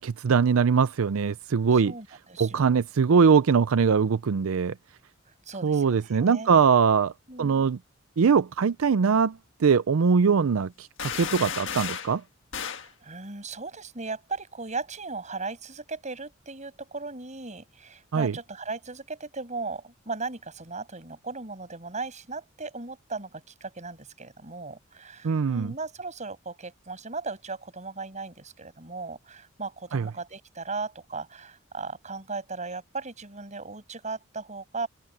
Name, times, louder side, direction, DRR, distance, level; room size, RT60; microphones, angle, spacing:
voice 1, 0.0-1.9 2.4-4.7 5.6-7.1 7.4-7.8 8.2-12.2 18.1-18.3 25.2-25.7 29.9-30.1, right 6 dB, 85° right, 0.5 m, -22 dB
voice 2, 1.7-2.7 5.5-6.5 7.3-7.7 12.7-34.9, right 3 dB, 35° right, 6.9 m, -37 dB
sound 1, 11.0-12.1 12.5-12.9, left 8 dB, 65° left, 1.6 m, -33 dB
open air
head